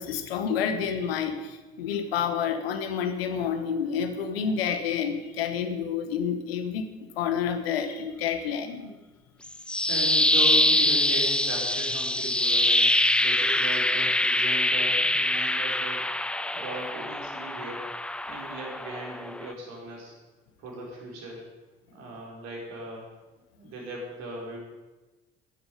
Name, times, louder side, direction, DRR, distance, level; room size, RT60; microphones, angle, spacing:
voice 1, 0.0-8.9, left 7 dB, 75° left, 9 dB, 1.2 m, -29 dB
sound 1, 9.4-19.5, left 1 dB, 5° left, 0.3 m, -24 dB
voice 2, 9.9-12.9 13.2-16.1 16.5-17.8 18.2-20.1 20.6-21.4 21.9-23.1 23.5-24.6, right 2 dB, 60° right, -2 dB, 4.5 m, -37 dB
14.5 x 11.0 x 5.3 m, 1.2 s
figure-of-eight pair, 50°, 31 cm